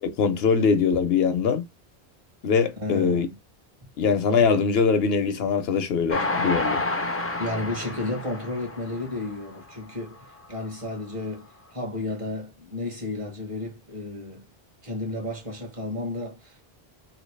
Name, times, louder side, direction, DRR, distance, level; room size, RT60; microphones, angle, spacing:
voice 1, 0.0-1.6 2.4-3.3 4.0-6.8, left 5 dB, 75° left, 0.9 m, -22 dB
voice 2, 2.8-3.4 7.4-14.4 14.8-16.7, left 2 dB, 35° right, 1.0 m, -32 dB
Train, 6.1-9.6 10.1-10.2 10.4-10.5, left 2 dB, 25° left, 0.3 m, -29 dB
2.9 x 2.9 x 3.2 m
omnidirectional pair, 1.0 m